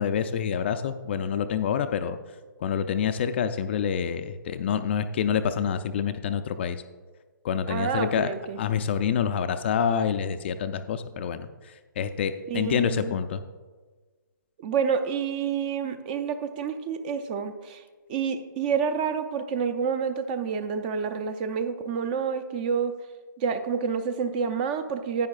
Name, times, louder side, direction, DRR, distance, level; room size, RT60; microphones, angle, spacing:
voice 1, 0.0-2.2 2.6-6.8 7.4-8.3 8.6-11.5 12.0-13.4, left 7 dB, 30° left, 9 dB, 0.3 m, -27 dB
voice 2, 7.7-8.6 12.5-13.1 14.6-17.8 18.1-22.9 23.4-25.3, right 6 dB, 25° right, 10 dB, 0.5 m, -28 dB
10.5 x 9.5 x 2.4 m, 1.4 s
hypercardioid pair, 150°, 11 cm